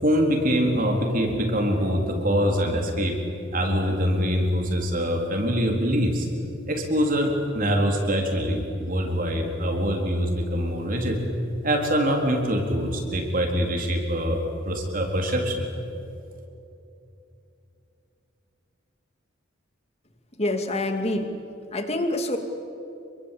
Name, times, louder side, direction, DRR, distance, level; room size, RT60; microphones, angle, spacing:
voice 1, 0.0-3.2 3.5-6.3 6.7-11.2 11.6-15.7, equal, 45° right, 2 dB, 3.9 m, -24 dB
voice 2, 20.4-21.2 21.7-22.4, left 1 dB, 30° left, 6 dB, 2.5 m, -26 dB
28.5 x 23.0 x 8.6 m, 2.7 s
head